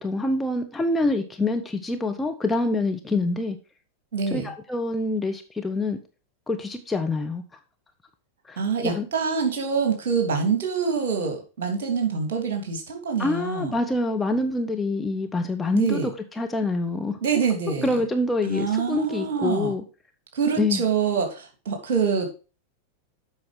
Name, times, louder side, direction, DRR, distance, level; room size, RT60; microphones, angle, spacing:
voice 1, 0.0-3.6 4.3-6.0 6.5-7.4 8.5-9.1 13.2-16.1 16.4-17.4 17.8-19.8 20.6-20.8, left 2 dB, 10° left, 3 dB, 1.1 m, -26 dB
voice 2, 4.1-4.5 8.6-13.7 15.7-16.1 17.2-17.9 18.5-19.7 20.3-22.3, right 6 dB, 55° right, 3 dB, 3.0 m, -25 dB
8.0 x 5.8 x 5.7 m, 0.34 s
figure-of-eight pair, 90°, 0 cm